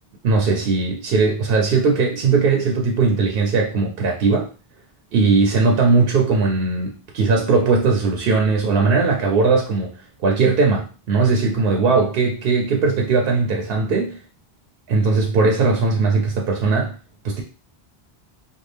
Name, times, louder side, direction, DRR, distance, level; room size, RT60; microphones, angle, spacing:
voice 1, 0.2-4.5 5.1-9.9 10.2-14.2 14.9-17.0 17.2-17.4, right 4 dB, 70° right, 1 dB, 0.7 m, -19 dB
2.6 x 2.4 x 3.2 m, 0.36 s
omnidirectional pair, 1.0 m